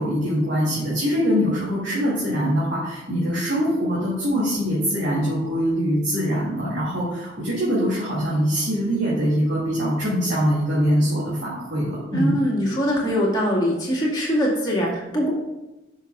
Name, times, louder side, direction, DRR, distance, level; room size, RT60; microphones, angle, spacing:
voice 1, 0.0-12.3, equal, 60° right, -10 dB, 2.7 m, -23 dB
voice 2, 12.1-15.3, equal, 20° left, -6 dB, 2.3 m, -22 dB
13.0 x 6.0 x 2.6 m, 1.0 s
head